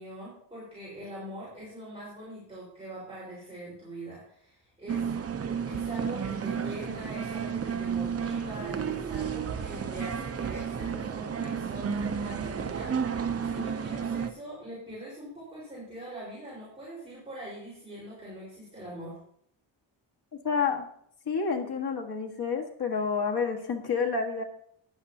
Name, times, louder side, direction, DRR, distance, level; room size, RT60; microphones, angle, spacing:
voice 1, 0.0-5.1 5.6-12.9 13.4-19.2, right 1 dB, 15° right, -9 dB, 4.6 m, -42 dB
sound 1, 4.9-14.3, right 7 dB, 35° right, 0.5 m, -32 dB
voice 2, 20.3-20.9 21.2-24.4, left 5 dB, 55° left, 2 dB, 1.7 m, -29 dB
14.5 x 10.5 x 2.8 m, 0.68 s
wide cardioid pair, 175°, 45 cm